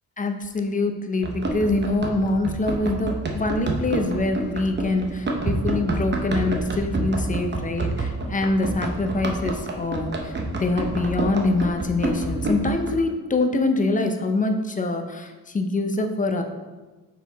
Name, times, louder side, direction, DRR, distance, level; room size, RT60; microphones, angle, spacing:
voice 1, 0.2-16.4, left 2 dB, 20° left, 5 dB, 0.5 m, -24 dB
Run, 1.2-12.9, right 2 dB, 30° right, 0.8 m, -28 dB
5.8 x 4.7 x 4.0 m, 1.3 s
cardioid pair, 125°, 37 cm